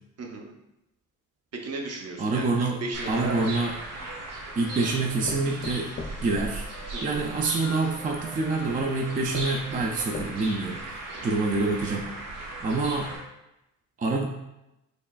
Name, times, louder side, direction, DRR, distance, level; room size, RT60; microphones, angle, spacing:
voice 1, 0.2-0.5 1.5-3.5 6.9-7.3 11.1-11.3, right 2 dB, 50° right, 1 dB, 0.7 m, -36 dB
voice 2, 2.2-2.8 3.1-3.7 4.6-5.9 6.2-6.7 7.0-12.1 12.6-13.1 14.0-14.3, right 3 dB, 25° right, 1 dB, 0.3 m, -26 dB
sound 1, 2.9-13.2, right 1 dB, 85° right, 1.1 m, -37 dB
sound 2, 3.6-4.5 5.3-7.2 8.2-8.3 8.9-9.0 9.3-10.7 11.2-11.3 11.6-11.7, left 3 dB, 40° left, 0.5 m, -40 dB
4.6 x 3.1 x 2.3 m, 0.91 s
cardioid pair, 105°, 31 cm